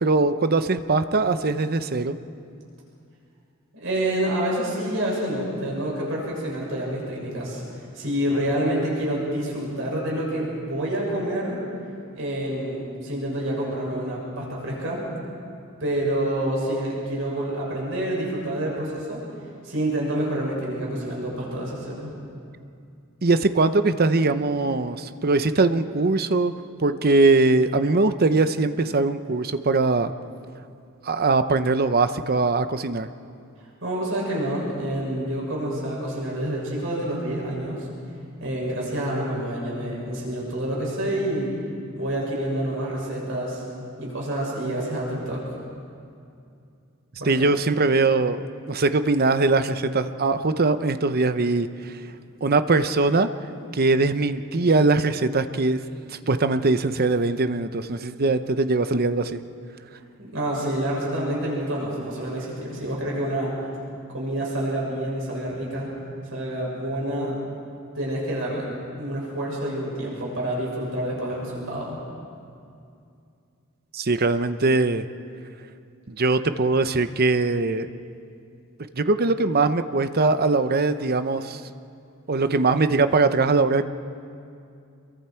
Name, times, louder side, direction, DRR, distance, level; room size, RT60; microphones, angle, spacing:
voice 1, 0.0-2.2 23.2-26.5 26.8-30.1 31.0-33.1 47.3-51.9 52.4-53.3 53.7-55.8 56.1-59.4 73.9-75.1 76.1-77.9 78.9-81.6 82.3-83.9, right 3 dB, 50° right, 11 dB, 0.8 m, -21 dB
voice 2, 3.7-7.6 7.9-11.6 12.1-15.0 15.8-19.2 19.6-22.1 33.8-37.9 38.4-41.5 41.9-43.6 44.0-45.4 47.2-47.3 60.2-63.5 64.1-65.9 66.2-67.4 67.9-68.7 69.0-72.0, right 1 dB, 70° right, -4 dB, 6.7 m, -28 dB
27.5 x 23.0 x 4.5 m, 2.5 s
head